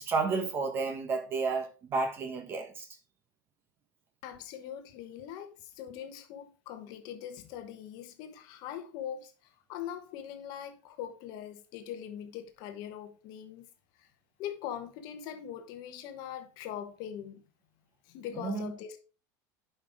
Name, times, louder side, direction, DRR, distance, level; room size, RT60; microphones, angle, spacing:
voice 1, 0.0-2.9 18.3-18.7, right 4 dB, 20° right, 1.1 m, -31 dB
voice 2, 4.2-13.7 14.0-14.1 14.4-17.4 18.0-19.0, left 9 dB, 45° left, 1.1 m, -42 dB
11.0 x 5.5 x 3.6 m
supercardioid pair, 175°, 10 cm